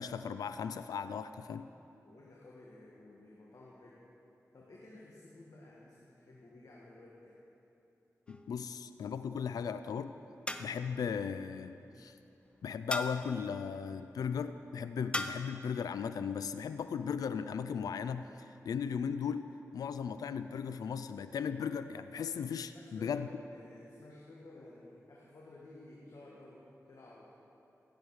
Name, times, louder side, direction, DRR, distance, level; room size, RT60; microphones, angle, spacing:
voice 1, 0.0-1.7 8.3-10.1 10.6-12.2 12.6-18.3 18.7-23.3, left 6 dB, 85° left, 11 dB, 0.3 m, -37 dB
voice 2, 2.0-4.0 4.5-7.4 22.7-27.3, left 2 dB, 65° left, -5 dB, 1.7 m, -54 dB
sound 1, 8.3-8.8 10.5-11.0 12.9-13.4 15.1-15.6, left 1 dB, 15° left, 0.7 m, -38 dB
15.5 x 8.1 x 4.8 m, 2.9 s
cardioid pair, 45°, 6 cm